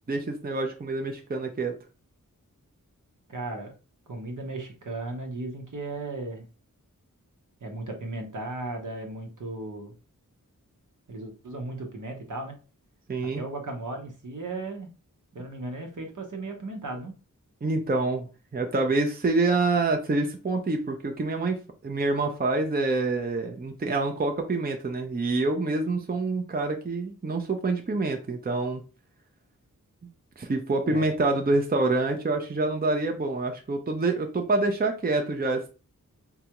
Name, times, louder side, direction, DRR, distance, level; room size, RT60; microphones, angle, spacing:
voice 1, 0.0-1.7 13.1-13.4 17.6-18.2 18.5-28.8 30.4-35.7, right 3 dB, 30° right, 3 dB, 0.6 m, -26 dB
voice 2, 3.3-3.7 4.1-6.5 7.6-9.9 11.1-12.5 13.4-14.9 15.3-17.1 30.9-31.2, right 2 dB, 65° right, 3 dB, 0.9 m, -36 dB
3.9 x 2.3 x 2.9 m, 0.34 s
wide cardioid pair, 45°, 34 cm